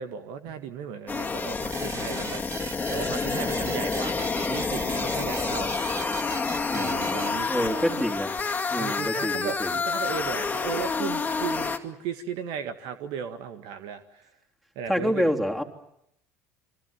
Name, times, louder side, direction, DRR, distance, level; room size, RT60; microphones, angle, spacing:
voice 1, 0.0-2.4 2.9-5.7 6.7-8.0 8.7-14.3 14.7-15.3, right 7 dB, 60° right, 9 dB, 1.8 m, -36 dB
sound 1, 1.1-11.8, left 4 dB, 20° left, 2.4 m, -28 dB
sound 2, 1.7-8.1, right 6 dB, 40° right, 1.6 m, -40 dB
voice 2, 6.7-8.3 8.7-9.7 14.9-15.6, equal, ahead, 2 dB, 3.4 m, -28 dB
27.5 x 24.5 x 7.5 m, 0.77 s
hypercardioid pair, 70°, 8 cm